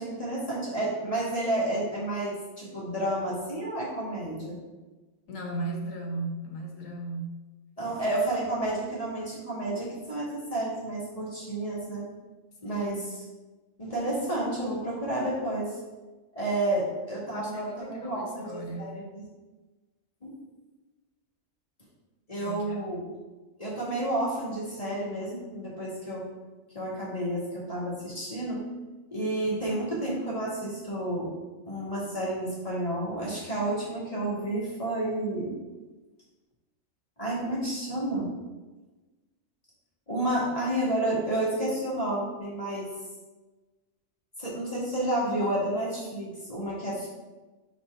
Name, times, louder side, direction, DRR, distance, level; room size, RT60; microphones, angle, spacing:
voice 1, 0.0-4.6 7.8-12.0 12.6-13.0 13.8-15.8 16.3-19.2 20.2-20.3 22.3-23.0 23.6-26.2 26.7-28.6 29.1-31.3 31.7-35.5 37.2-38.3 40.1-42.9 44.4-47.1, right 1 dB, 30° left, -7 dB, 1.6 m, -30 dB
voice 2, 5.3-7.4 12.7-13.1 17.3-19.0 22.4-22.8 29.4-29.6, right 2 dB, 80° left, 1 dB, 1.4 m, -37 dB
4.3 x 4.1 x 5.7 m, 1.2 s
omnidirectional pair, 1.4 m